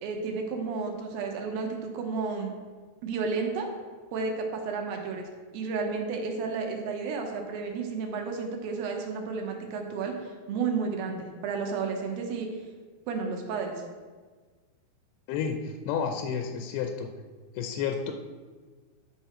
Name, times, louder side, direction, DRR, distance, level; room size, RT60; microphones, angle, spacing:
voice 1, 0.0-2.5 3.0-3.7 4.1-5.3 5.5-12.5 13.1-13.7, right 4 dB, 70° right, 2 dB, 2.5 m, -32 dB
voice 2, 15.3-17.1 17.5-18.1, left 6 dB, 85° left, 4 dB, 2.8 m, -31 dB
10.5 x 5.5 x 4.3 m, 1.4 s
omnidirectional pair, 4.8 m